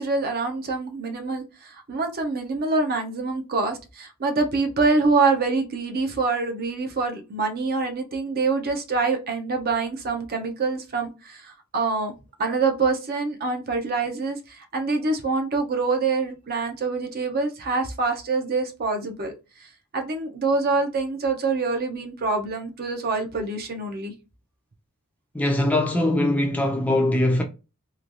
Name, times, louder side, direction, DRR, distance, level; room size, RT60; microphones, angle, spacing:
voice 1, 0.0-12.1 12.4-19.3 19.9-24.1, right 3 dB, 45° right, 0.6 m, -25 dB
voice 2, 25.3-27.4, left 1 dB, 5° left, 0.4 m, -21 dB
3.1 x 2.3 x 2.5 m
head